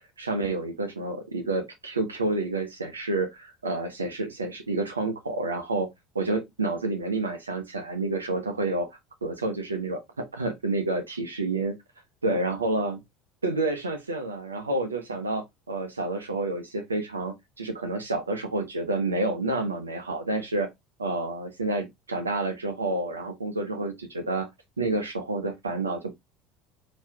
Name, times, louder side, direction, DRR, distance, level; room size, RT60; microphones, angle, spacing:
voice 1, 0.2-5.9 6.1-8.9 9.2-11.8 12.2-13.0 13.4-20.7 21.0-24.5 24.8-26.1, right 2 dB, 85° right, 1.0 m, -29 dB
4.6 x 3.1 x 3.4 m
figure-of-eight pair, 70°, 0 cm